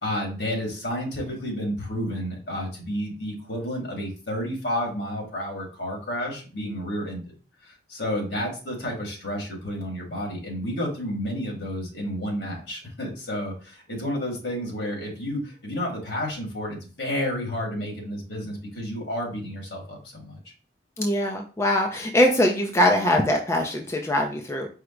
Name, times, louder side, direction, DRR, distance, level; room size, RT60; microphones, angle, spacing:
voice 1, 0.0-7.2 7.9-20.4, equal, 75° left, -1 dB, 1.9 m, -31 dB
voice 2, 21.0-24.7, left 1 dB, 15° left, 2 dB, 0.4 m, -22 dB
4.9 x 2.1 x 4.4 m, 0.36 s
head